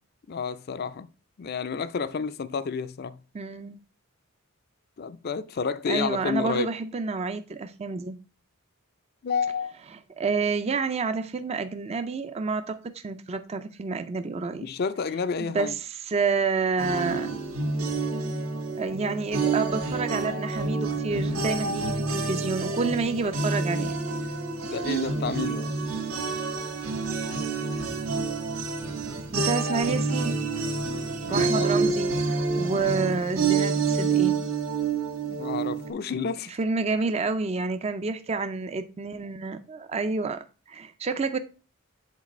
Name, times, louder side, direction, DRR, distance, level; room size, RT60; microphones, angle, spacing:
voice 1, 0.3-1.1 1.4-3.2 5.0-6.7 9.2-9.7 14.6-15.7 24.6-25.7 31.2-31.7 35.2-36.5, left 5 dB, 45° left, 0.4 m, -30 dB
voice 2, 3.3-3.8 5.9-8.2 10.2-14.7 15.4-17.3 18.8-23.9 29.3-30.5 31.3-34.4 36.6-41.4, right 4 dB, 30° right, 0.4 m, -29 dB
sound 1, 16.8-35.9, right 4 dB, 85° right, 1.3 m, -28 dB
7.4 x 4.0 x 4.2 m
head